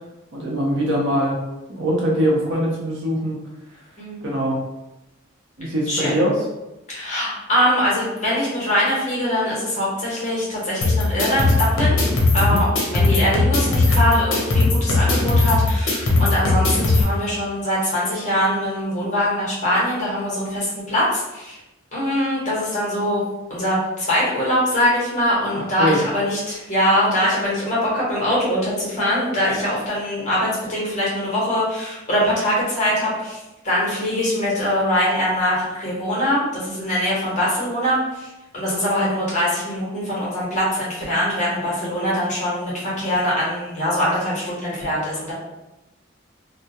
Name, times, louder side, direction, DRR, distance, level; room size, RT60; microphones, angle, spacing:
voice 1, 0.3-1.4 1.7-3.4 4.2-4.6 5.6-6.4 12.4-12.6 25.5-26.0, equal, 60° right, -3 dB, 0.6 m, -22 dB
voice 2, 5.9-6.2 6.9-12.0 12.3-12.7 12.9-21.6 21.9-23.2 23.5-33.4 33.6-45.3, equal, 35° left, -7 dB, 0.9 m, -22 dB
sound 1, 10.8-17.0, left 2 dB, 80° left, 0.6 m, -18 dB
2.2 x 2.1 x 2.7 m, 0.99 s
head